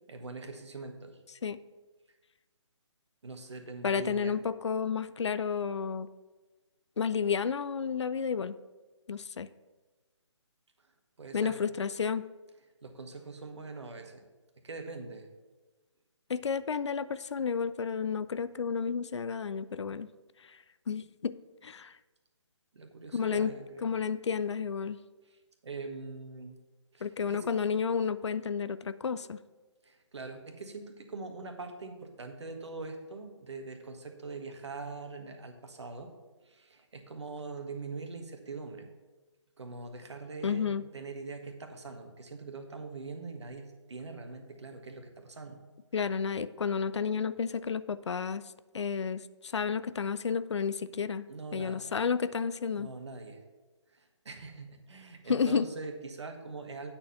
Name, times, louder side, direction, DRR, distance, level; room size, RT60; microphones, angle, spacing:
voice 1, 0.1-1.2 3.2-4.3 11.2-11.6 12.8-14.2 14.6-15.3 22.7-23.9 25.2-26.6 26.9-27.4 29.8-36.1 36.4-38.9 39.6-45.6 51.3-51.9 52.8-53.4 53.9-56.9, right 3 dB, 65° right, 5 dB, 1.5 m, -43 dB
voice 2, 3.8-6.1 7.0-8.5 9.1-9.5 11.3-12.3 16.3-20.1 20.5-20.6 20.9-21.4 21.6-21.9 23.1-25.0 27.0-29.4 40.4-40.8 45.9-48.4 48.7-51.3 51.5-52.9 55.3-55.7, left 6 dB, 65° left, 15 dB, 0.4 m, -31 dB
8.7 x 4.4 x 7.0 m, 1.2 s
figure-of-eight pair, 145°, 16 cm